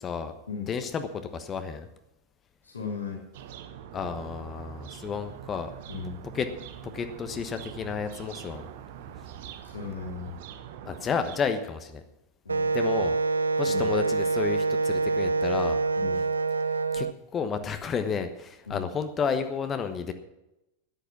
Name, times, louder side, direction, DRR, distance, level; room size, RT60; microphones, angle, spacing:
voice 1, 0.0-0.3 0.7-1.9 3.9-5.7 6.3-6.5 6.8-8.7 10.8-12.0 12.7-13.2 13.6-15.8 16.9-20.1, left 6 dB, 25° left, 8 dB, 1.2 m, -31 dB
voice 2, 2.6-3.2 5.9-6.2 9.6-10.4 12.4-12.7 13.6-13.9 16.0-16.2 18.7-18.9, left 5 dB, 75° left, -2 dB, 3.3 m, -36 dB
sound 1, 3.3-11.4, right 9 dB, 55° right, 1.0 m, -44 dB
Wind instrument woodwind instrument, 12.5-17.1, right 3 dB, 75° right, 0.5 m, -26 dB
13.0 x 10.5 x 6.0 m, 0.90 s
figure-of-eight pair, 90°, 0 cm